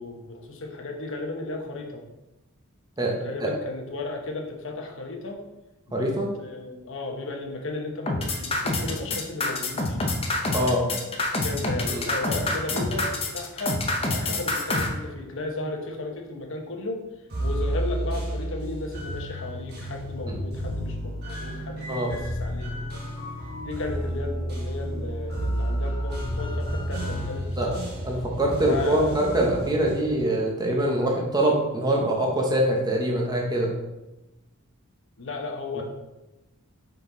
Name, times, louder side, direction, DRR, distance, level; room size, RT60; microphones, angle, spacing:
voice 1, 0.0-2.0 3.2-5.4 5.9-6.1 6.4-10.1 11.4-13.8 14.1-17.0 17.4-23.0 23.6-27.8 28.6-29.3 35.2-35.8, left 2 dB, 65° left, 2 dB, 1.0 m, -34 dB
voice 2, 3.0-3.5 5.9-6.3 10.5-10.9 11.9-12.0 20.3-20.4 21.9-22.1 27.6-27.7 28.0-33.7 35.8-35.9, right 1 dB, 20° right, -1 dB, 1.0 m, -24 dB
sound 1, 8.1-14.9, left 2 dB, 25° left, 0.8 m, -26 dB
sound 2, 17.3-30.1, equal, 50° right, 1.4 m, -31 dB
5.3 x 4.8 x 3.9 m, 1.0 s
head